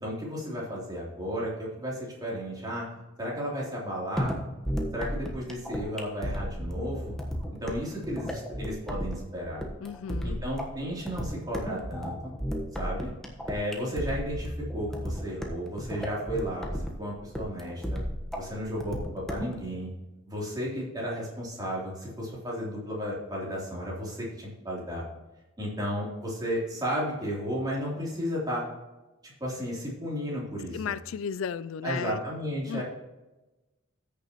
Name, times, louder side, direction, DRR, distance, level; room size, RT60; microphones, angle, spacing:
voice 1, 0.0-2.9 3.2-4.3 4.9-7.1 7.6-9.6 10.2-12.1 12.7-13.1 13.5-18.0 18.4-19.9 20.2-25.0 25.6-28.6 29.2-30.9 31.8-32.8, equal, 20° right, 3.4 m, -33 dB
sound 1, 4.2-19.6, equal, ahead, 1.3 m, -34 dB
voice 2, 9.8-10.4 30.7-32.2 32.7-32.8, left 7 dB, 75° left, 0.4 m, -34 dB
14.5 x 6.8 x 3.1 m
head